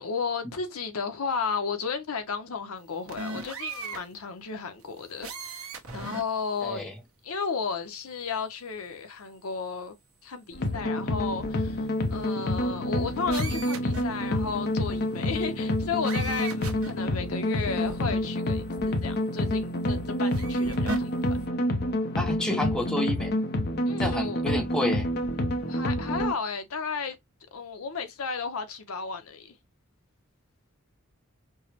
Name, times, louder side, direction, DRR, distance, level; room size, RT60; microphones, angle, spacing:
voice 1, 0.0-6.9 7.2-9.9 10.2-18.6 19.0-21.1 23.9-24.4 25.6-27.2 27.5-29.6, left 5 dB, 80° left, 0.7 m, -33 dB
sound 1, 3.1-4.0 5.2-6.2 6.7-6.8 13.3-14.0 16.0-16.9 17.8-17.9 20.3-21.0, right 3 dB, 75° right, 0.9 m, -36 dB
voice 2, 6.6-6.9 22.2-23.3 24.0-25.1, left 1 dB, 5° left, 0.6 m, -29 dB
sound 2, 10.5-26.3, left 1 dB, 50° left, 0.6 m, -28 dB
4.6 x 2.0 x 2.8 m
head